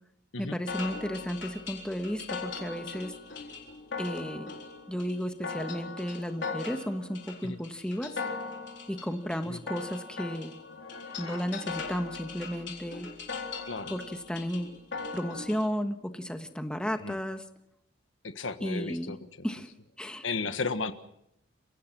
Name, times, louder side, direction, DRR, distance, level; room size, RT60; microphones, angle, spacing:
voice 1, 0.4-3.1 4.0-4.5 4.9-8.1 8.9-10.5 11.2-13.1 13.9-14.7 15.1-17.4 18.6-19.1 19.4-19.7 20.0-20.2, equal, 5° left, 6 dB, 1.3 m, -33 dB
sound 1, 0.7-15.7, left 4 dB, 65° left, 4.1 m, -39 dB
voice 2, 18.2-19.2 20.2-20.9, left 4 dB, 85° left, 10 dB, 1.5 m, -33 dB
30.0 x 16.5 x 6.0 m, 0.78 s
head